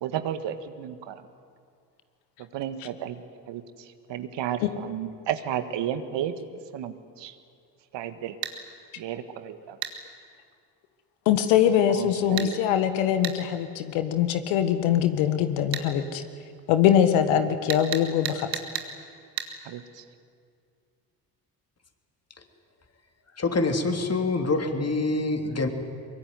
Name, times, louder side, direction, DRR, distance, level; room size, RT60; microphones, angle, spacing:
voice 1, 0.0-1.2 2.4-6.4 6.7-7.4 7.9-8.4 9.0-9.8 11.9-12.6 17.3-17.4 19.7-20.0, right 10 dB, 60° right, 10 dB, 1.8 m, -33 dB
sound 1, 8.4-8.6 9.8-10.0 12.4-12.5 13.2-13.4 15.7-15.9 17.7-18.9 19.4-19.5, right 11 dB, 85° right, 2.0 m, -31 dB
voice 2, 11.3-16.2 16.7-18.5, left 10 dB, 70° left, 9 dB, 1.7 m, -22 dB
voice 3, 23.3-25.7, left 3 dB, 30° left, 5 dB, 3.4 m, -25 dB
23.0 x 23.0 x 9.6 m, 2.2 s
hypercardioid pair, 55°, 49 cm